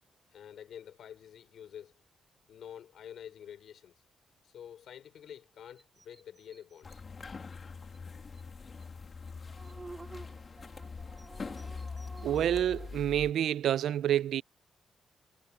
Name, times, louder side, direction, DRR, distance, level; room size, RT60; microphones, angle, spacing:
voice 1, 0.3-1.9 2.5-3.9 4.4-7.0, left 9 dB, 70° left, 3.8 m, -48 dB
sound 1, 5.8-7.0 7.5-7.6 7.9-8.0 8.3-8.4 8.8-8.9 9.2-12.9, right 3 dB, 20° right, 2.2 m, -51 dB
sound 2, 6.8-13.3, left 4 dB, 30° left, 1.9 m, -43 dB
voice 2, 12.2-14.4, right 11 dB, 80° right, 0.4 m, -28 dB
wide cardioid pair, 160°, 0 cm